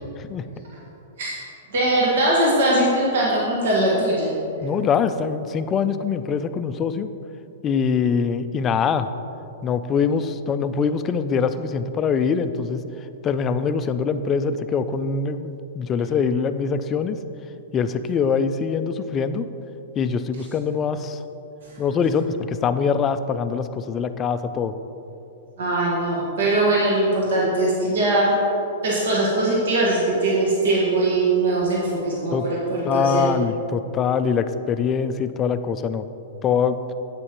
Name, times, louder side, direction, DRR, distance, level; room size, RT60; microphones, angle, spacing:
voice 1, 1.7-4.3 21.6-21.8 25.6-28.4 28.8-33.3, right 2 dB, 75° right, -4 dB, 1.6 m, -21 dB
voice 2, 4.6-7.1 7.6-9.1 9.6-12.8 13.2-17.2 17.7-19.5 20.0-21.2 21.8-24.7 32.3-32.5 32.8-36.1 36.4-36.8, left 6 dB, 20° left, 11 dB, 0.3 m, -23 dB
9.8 x 8.3 x 3.0 m, 2.9 s
hypercardioid pair, 150°, 0 cm